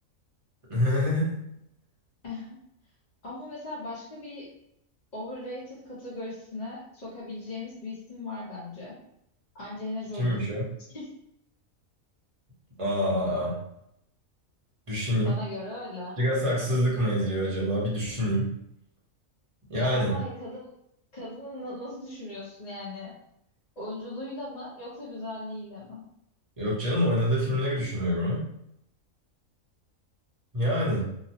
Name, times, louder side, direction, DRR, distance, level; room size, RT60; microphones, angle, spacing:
voice 1, 0.7-1.3 10.1-10.7 12.8-13.6 14.9-15.3 16.2-18.5 19.7-20.2 26.6-28.5 30.5-31.1, equal, 25° right, -6 dB, 0.9 m, -26 dB
voice 2, 2.2-2.6 3.2-4.5 5.1-9.0 9.5-10.4 10.9-11.1 15.2-16.2 19.7-20.7 21.1-23.1 23.8-26.0, left 2 dB, 35° left, -9 dB, 1.0 m, -38 dB
2.9 x 2.2 x 2.8 m, 0.76 s
omnidirectional pair, 1.4 m